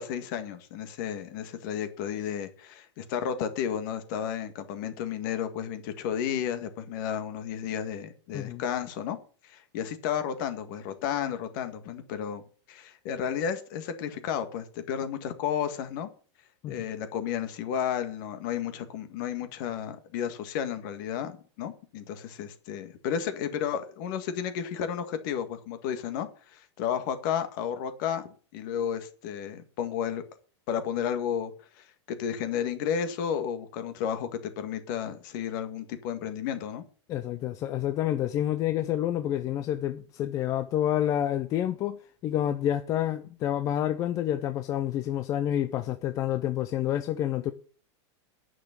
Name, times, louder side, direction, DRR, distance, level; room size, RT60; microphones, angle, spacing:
voice 1, 0.0-9.2 9.4-12.4 12.7-16.1 16.7-30.2 30.7-36.8, left 8 dB, 45° left, 1.8 m, -32 dB
voice 2, 37.1-47.5, left 11 dB, 20° left, 0.5 m, -28 dB
10.0 x 6.4 x 8.4 m
supercardioid pair, 165°, 15 cm